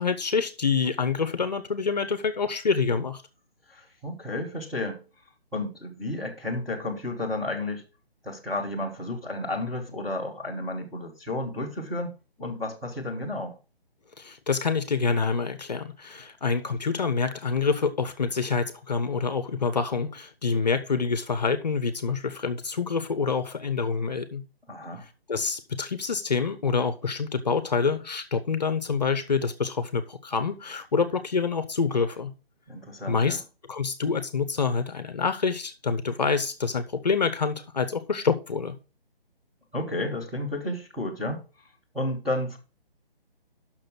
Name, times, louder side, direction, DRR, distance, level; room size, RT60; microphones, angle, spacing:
voice 1, 0.0-3.2 14.2-24.4 25.3-32.3 33.1-33.4 33.7-38.7, left 5 dB, 45° left, 0.8 m, -27 dB
voice 2, 3.7-5.0 5.5-7.9 8.2-13.6 24.7-25.1 32.7-33.4 39.7-41.4 41.9-42.6, left 1 dB, ahead, 0.8 m, -32 dB
6.4 x 6.1 x 5.9 m
figure-of-eight pair, 145°, 30 cm